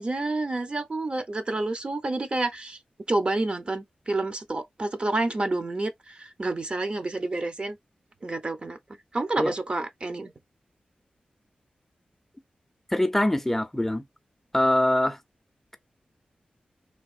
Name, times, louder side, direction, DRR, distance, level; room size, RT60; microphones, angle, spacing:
voice 1, 0.0-2.8 3.1-7.8 8.2-8.8 9.1-10.3, right 2 dB, 40° right, 0.6 m, -29 dB
voice 2, 12.9-14.0 14.5-15.2, left 1 dB, 10° left, 0.5 m, -23 dB
3.4 x 2.5 x 2.4 m
wide cardioid pair, 80°, 3 cm